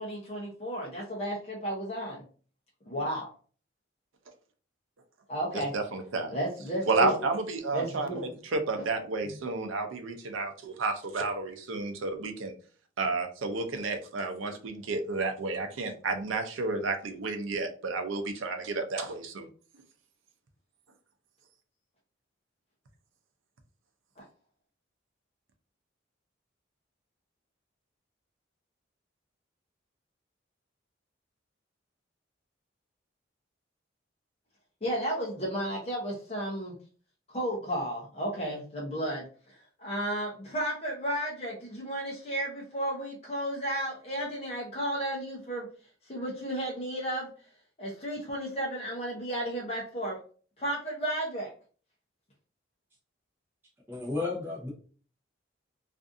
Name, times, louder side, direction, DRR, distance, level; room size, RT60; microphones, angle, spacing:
voice 1, 0.0-2.2 2.9-3.3 5.3-5.7 6.3-7.1 7.7-8.3 8.8-8.9 24.2-24.3 34.8-36.7 37.3-39.3 39.8-45.7 46.1-47.3 47.8-50.2 50.6-51.5, right 1 dB, 30° left, -4 dB, 0.6 m, -33 dB
voice 2, 5.5-6.4 6.9-12.5 13.0-19.5, right 3 dB, 85° right, 6 dB, 0.5 m, -31 dB
voice 3, 53.9-54.7, left 3 dB, 10° right, -4 dB, 0.6 m, -33 dB
2.5 x 2.4 x 2.5 m, 0.41 s
head